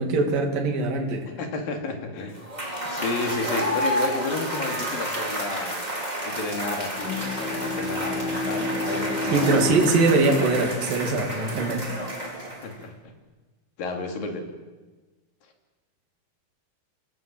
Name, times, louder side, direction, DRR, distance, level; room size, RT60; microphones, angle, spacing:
voice 1, 0.0-1.3 9.3-12.0, right 3 dB, 60° right, 4 dB, 4.2 m, -22 dB
voice 2, 1.3-2.4 2.9-5.9 6.2-9.6 12.6-13.1 13.8-14.5, left 3 dB, 65° left, 4 dB, 4.2 m, -31 dB
Cheering / Applause / Crowd, 2.3-12.8, right 1 dB, 10° right, 3.8 m, -30 dB
Bowed string instrument, 6.9-12.2, left 2 dB, 80° left, 4.3 m, -32 dB
27.5 x 19.0 x 7.6 m, 1.3 s
omnidirectional pair, 4.5 m